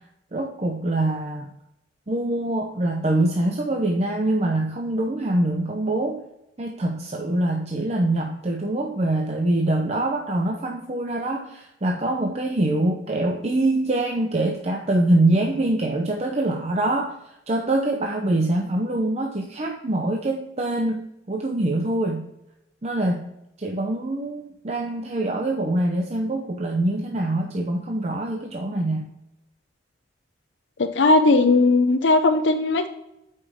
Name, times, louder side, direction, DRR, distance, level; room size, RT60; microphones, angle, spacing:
voice 1, 0.3-1.5 2.1-6.2 6.6-17.2 17.5-22.3 22.8-23.3 23.6-29.1, right 1 dB, 35° right, 1 dB, 0.7 m, -24 dB
voice 2, 30.8-32.9, left 3 dB, 85° left, 7 dB, 0.6 m, -18 dB
8.4 x 5.4 x 3.6 m, 0.87 s
head